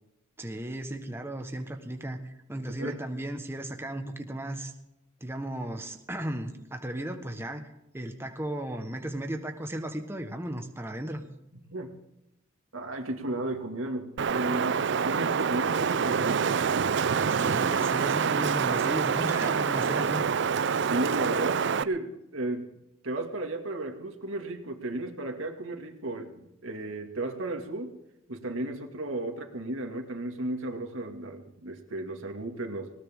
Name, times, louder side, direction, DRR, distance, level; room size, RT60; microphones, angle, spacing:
voice 1, 0.4-4.7 5.2-7.7 7.9-11.2 17.3-20.2, right 1 dB, 10° right, 5 dB, 1.3 m, -35 dB
voice 2, 11.5-11.9 12.7-16.6 20.8-22.7 23.0-27.9 28.3-32.9, right 2 dB, 90° right, 3 dB, 2.4 m, -34 dB
Wind, 14.2-21.8, right 6 dB, 60° right, 0.5 m, -26 dB
19.5 x 19.0 x 3.8 m, 0.88 s
head